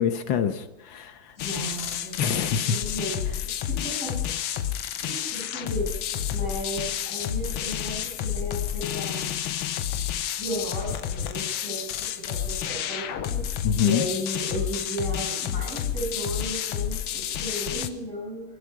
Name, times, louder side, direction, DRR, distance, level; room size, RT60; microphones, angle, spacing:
voice 1, 0.0-1.2 2.2-2.8 13.6-14.1, left 8 dB, 65° left, 9 dB, 1.7 m, -25 dB
sound 1, 1.4-17.9, left 10 dB, 85° left, 1.7 m, -30 dB
voice 2, 1.4-2.4 2.7-4.3 5.0-9.3 10.4-18.4, equal, 35° left, -3 dB, 7.8 m, -35 dB
27.0 x 10.5 x 4.8 m, 0.95 s
omnidirectional pair, 2.3 m